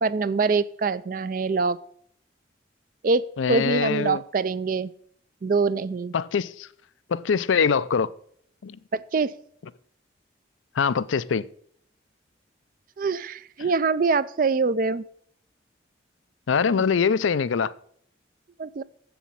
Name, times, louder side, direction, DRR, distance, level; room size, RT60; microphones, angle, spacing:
voice 1, 0.0-1.8 3.0-4.9 5.4-6.1 8.9-9.3 13.0-15.0 16.6-16.7 18.6-18.8, right 4 dB, 45° right, 0.4 m, -24 dB
voice 2, 3.4-4.2 6.1-6.7 7.1-8.1 8.6-8.8 10.8-11.4 13.6-13.7 16.5-17.7, left 6 dB, 85° left, 0.5 m, -23 dB
7.4 x 7.0 x 7.5 m
head